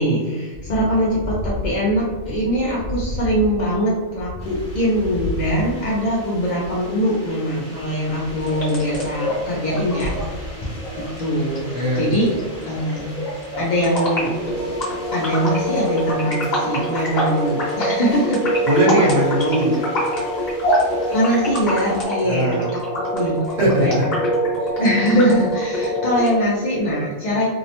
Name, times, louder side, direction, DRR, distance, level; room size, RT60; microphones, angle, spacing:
voice 1, 0.0-10.4 10.6-12.3 12.7-13.2 13.6-14.3 15.1-18.5 21.1-24.0 24.6-27.5, equal, 70° left, -5 dB, 0.4 m, -22 dB
sound 1, 0.5-7.0 7.3-11.2 12.0-12.1 14.4-15.0, left 1 dB, 80° right, 1.0 m, -33 dB
sound 2, 4.4-22.0, equal, 15° left, 0.9 m, -42 dB
sound 3, 8.4-26.4, equal, 40° left, 0.9 m, -25 dB
voice 2, 11.7-12.1 18.7-19.8 22.2-22.6 23.6-24.0, right 1 dB, 60° right, -5 dB, 1.3 m, -19 dB
2.7 x 2.0 x 2.8 m, 1.4 s
omnidirectional pair, 1.4 m